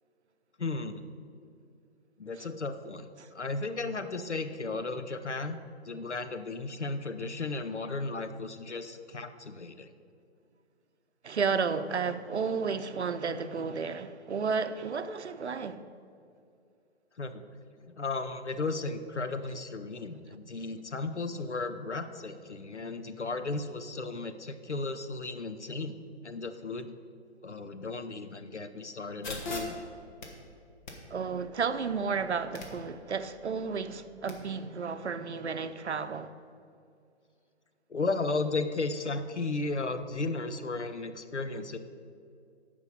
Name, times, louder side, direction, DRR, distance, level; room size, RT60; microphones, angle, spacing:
voice 1, 0.6-1.0 2.2-5.6 5.8-9.9 17.2-17.5 17.8-26.0 26.2-26.9 27.4-29.8 37.9-41.8, left 3 dB, 85° left, 0.8 m, -35 dB
voice 2, 11.2-15.9 31.1-36.4, right 5 dB, 75° right, 0.7 m, -32 dB
sound 1, 29.2-34.3, left 1 dB, 40° left, 1.6 m, -44 dB
13.5 x 5.2 x 5.5 m
figure-of-eight pair, 135°, 34 cm